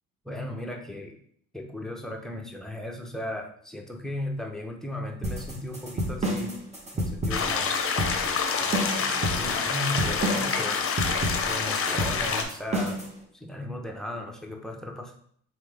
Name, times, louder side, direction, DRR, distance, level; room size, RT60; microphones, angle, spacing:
voice 1, 0.2-1.2 1.5-6.6 6.9-7.8 8.6-10.9 11.4-13.0 13.3-15.1, left 1 dB, ahead, 1 dB, 0.7 m, -36 dB
sound 1, 5.2-13.1, right 1 dB, 20° right, 1.1 m, -30 dB
sound 2, 7.3-12.4, left 5 dB, 45° left, 0.6 m, -27 dB
3.8 x 3.3 x 3.3 m, 0.63 s
cardioid pair, 90°, 30 cm